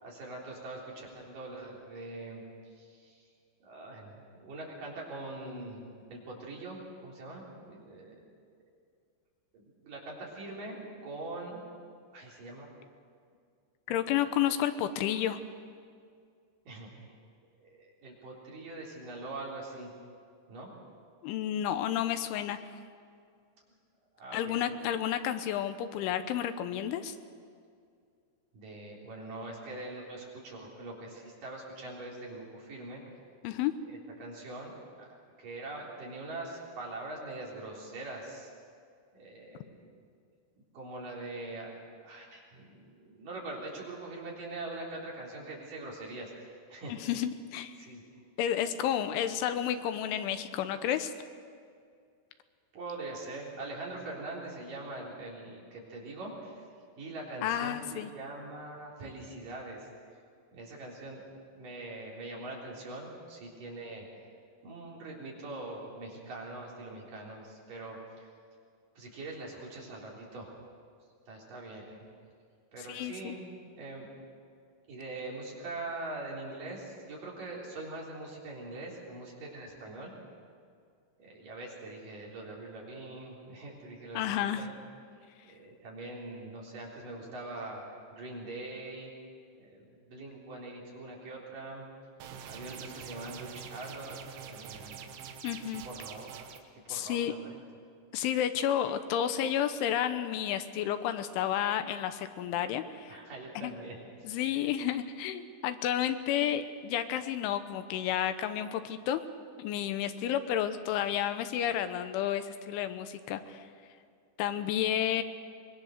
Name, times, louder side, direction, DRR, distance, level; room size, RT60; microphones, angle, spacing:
voice 1, 0.0-2.4 2.8-3.3 3.6-8.3 9.5-11.6 12.1-12.7 13.9-14.2 16.6-17.1 17.6-19.9 20.5-20.7 24.2-24.9 28.5-33.0 34.1-35.1 35.4-38.5 39.1-39.9 40.7-41.7 42.0-47.0 47.8-48.2 52.7-56.6 57.0-59.9 60.5-61.2 61.5-64.1 64.6-68.3 68.9-70.5 71.3-72.1 72.7-74.1 74.9-80.1 81.2-84.7 85.1-87.8 88.1-89.1 89.6-91.8 92.4-94.2 94.5-95.1 95.8-96.5 96.8-97.6 103.1-104.0 104.5-104.7, right 2 dB, 45° right, -3 dB, 4.9 m, -43 dB
voice 2, 13.9-15.4 21.2-22.6 24.3-27.1 33.4-33.7 46.9-47.8 48.4-51.1 57.4-58.1 72.9-73.4 84.1-84.6 95.4-95.8 96.9-97.3 98.1-103.2 103.6-103.7 104.2-109.2 109.6-113.6 114.4-115.2, left 10 dB, 80° left, 10 dB, 3.2 m, -31 dB
sound 1, 92.2-96.6, right 7 dB, 75° right, 3.6 m, -45 dB
25.0 x 21.5 x 6.6 m, 2.2 s
omnidirectional pair, 5.7 m